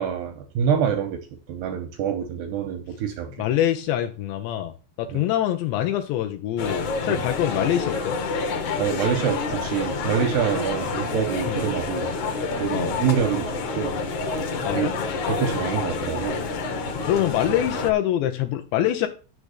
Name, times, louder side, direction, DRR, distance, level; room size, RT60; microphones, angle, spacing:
voice 1, 0.0-3.3 5.1-5.2 7.1-7.2 8.8-12.1 12.6-14.0 14.7-14.9 15.3-16.4, right 8 dB, 85° right, 6 dB, 2.4 m, -26 dB
voice 2, 3.4-4.7 5.0-8.2 11.5-11.6 12.7-12.9 14.6-14.9 17.1-19.1, left 12 dB, 80° left, 6 dB, 2.6 m, -24 dB
sound 1, 6.6-17.9, left 4 dB, 65° left, 2.0 m, -28 dB
7.5 x 6.7 x 8.1 m, 0.36 s
omnidirectional pair, 5.8 m